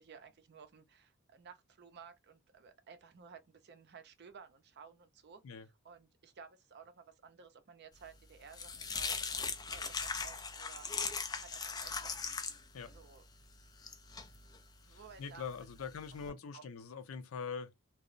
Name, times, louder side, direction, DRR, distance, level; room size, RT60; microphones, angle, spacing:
voice 1, 0.0-5.4 5.8-9.4 9.7-10.9 11.4-12.4 12.9-13.2 14.9-15.9 16.3-16.7, right 6 dB, 55° right, 0.5 m, -56 dB
sound 1, 8.0-16.3, left 5 dB, 20° left, 0.4 m, -41 dB
voice 2, 14.9-17.7, left 6 dB, 85° left, 0.5 m, -43 dB
2.9 x 2.0 x 2.4 m
head